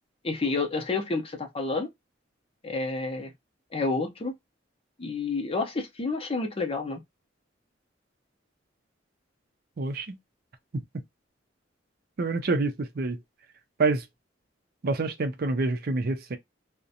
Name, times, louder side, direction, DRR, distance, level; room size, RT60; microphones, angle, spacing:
voice 1, 0.2-1.9 2.6-3.3 3.7-4.3 5.0-7.0, left 3 dB, 30° left, 0.6 m, -29 dB
voice 2, 9.8-10.2 12.2-13.2 13.8-14.0 14.8-16.4, right 3 dB, 55° right, 0.5 m, -27 dB
2.5 x 2.1 x 2.7 m
head